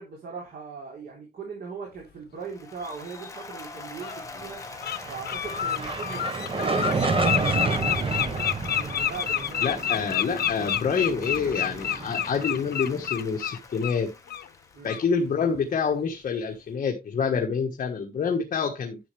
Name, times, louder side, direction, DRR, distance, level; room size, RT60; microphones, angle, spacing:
voice 1, 0.0-4.6 5.1-10.1 14.7-15.0, right 5 dB, 70° right, 3.5 m, -40 dB
Applause, 2.4-15.6, left 3 dB, 20° left, 1.6 m, -44 dB
Bird, 3.2-3.3 4.0-4.1 4.6-5.0 5.2-14.0 14.3-14.5 14.9-15.0, left 10 dB, 80° left, 0.9 m, -29 dB
sound 1, 4.7-13.1, right 4 dB, 35° right, 1.2 m, -30 dB
voice 2, 9.6-14.1 14.8-19.0, left 6 dB, 55° left, 1.5 m, -27 dB
11.0 x 6.9 x 3.4 m
wide cardioid pair, 165°, 16 cm